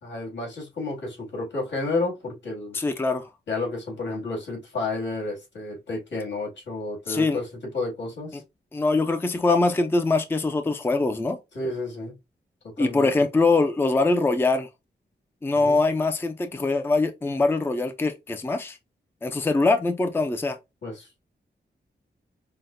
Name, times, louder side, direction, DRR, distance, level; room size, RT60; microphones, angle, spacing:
voice 1, 0.0-2.8 3.5-8.4 11.5-12.1 12.6-13.1 15.5-15.8 20.8-21.2, left 3 dB, 85° left, 2.2 m, -31 dB
voice 2, 2.7-3.3 7.1-7.4 8.7-11.4 12.8-14.7 15.4-18.8 19.2-20.6, left 3 dB, 10° left, 0.4 m, -23 dB
5.7 x 2.1 x 2.5 m
wide cardioid pair, 165°, 18 cm